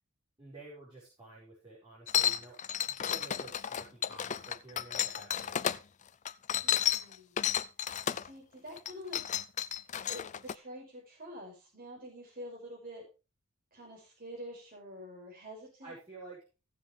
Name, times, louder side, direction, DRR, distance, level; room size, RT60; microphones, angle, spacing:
voice 1, 0.4-5.6 15.8-16.4, right 3 dB, 20° right, -7 dB, 4.7 m, -51 dB
sound 1, 2.1-5.8 6.3-8.3 8.8-10.5, left 9 dB, 35° left, 0.4 m, -32 dB
voice 2, 6.6-7.4 8.2-9.2 10.1-13.0 13.7-16.0, equal, 40° right, -2 dB, 5.5 m, -47 dB
16.0 x 7.4 x 3.3 m, 0.31 s
head